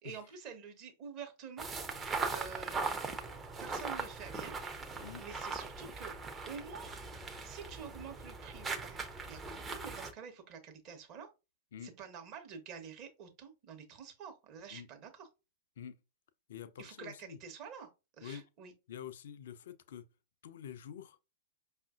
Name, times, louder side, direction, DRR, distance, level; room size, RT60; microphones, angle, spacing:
voice 1, 0.0-1.8 2.0-4.9 5.2-6.2 6.4-6.9 7.4-11.3 11.8-15.3 16.8-17.9 18.2-18.7, right 6 dB, 40° right, 0.9 m, -48 dB
sound 1, 1.6-10.1, right 4 dB, 20° right, 0.6 m, -40 dB
voice 2, 16.5-17.4 18.2-18.4 18.9-20.1 20.4-21.2, left 9 dB, 60° left, 0.4 m, -47 dB
5.2 x 2.4 x 2.4 m
figure-of-eight pair, 105°, 0 cm